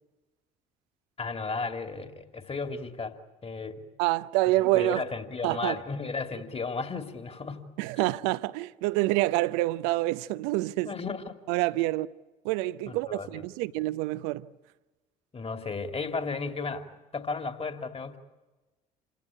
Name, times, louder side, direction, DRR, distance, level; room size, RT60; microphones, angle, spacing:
voice 1, 1.2-3.2 3.4-3.8 4.7-7.7 8.0-8.1 10.8-11.4 12.9-13.4 15.3-18.2, left 4 dB, 30° left, 2.7 m, -34 dB
voice 2, 4.0-5.0 5.4-5.8 7.8-10.9 11.5-12.1 12.4-14.5, right 18 dB, 70° right, 0.7 m, -27 dB
27.5 x 16.0 x 9.9 m
hypercardioid pair, 55°, 21 cm